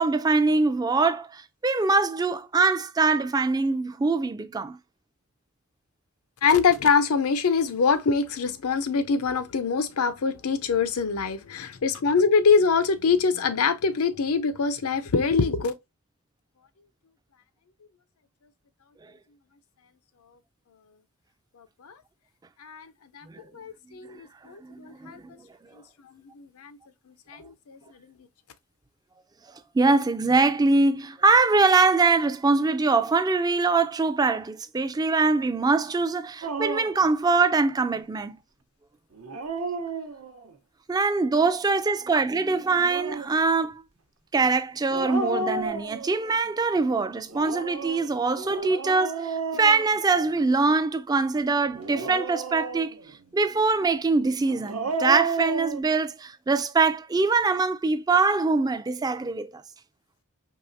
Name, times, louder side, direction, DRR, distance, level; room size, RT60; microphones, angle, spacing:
voice 1, 0.0-4.8 23.2-23.4 24.6-25.5 29.7-38.4 40.9-43.8 44.3-53.0 53.3-59.6, right 3 dB, 20° right, 0.3 m, -23 dB
voice 2, 6.4-15.7 21.6-21.9 22.6-22.9 23.1-23.3 23.5-25.2 26.1-26.8 27.1-28.1, left 5 dB, 85° left, 0.6 m, -24 dB
Dog, 36.4-37.1 39.1-40.5 42.6-43.4 44.9-46.4 47.3-50.5 51.7-53.1 54.5-55.8, right 3 dB, 80° right, 0.8 m, -32 dB
4.7 x 3.1 x 2.6 m
head